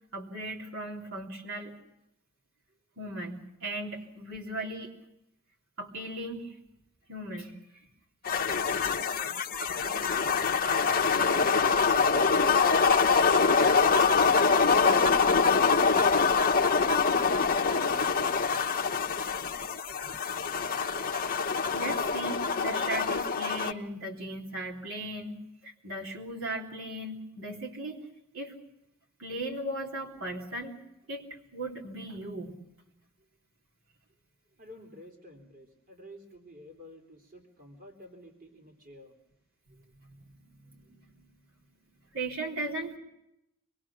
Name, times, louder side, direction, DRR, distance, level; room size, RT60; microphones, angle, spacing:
voice 1, 0.1-1.7 3.0-4.9 5.8-6.5 7.1-7.6 14.1-14.5 18.9-19.0 21.7-28.0 28.3-28.6 29.2-30.7 31.1-32.5 39.7-39.8 40.1-40.2 40.5-41.0 42.1-43.0, right 1 dB, 65° right, -2 dB, 3.4 m, -37 dB
sound 1, 8.2-23.7, left 5 dB, 40° left, 1.1 m, -25 dB
voice 2, 34.6-39.1, equal, 40° right, 3 dB, 3.5 m, -51 dB
26.5 x 21.5 x 6.1 m, 0.83 s
head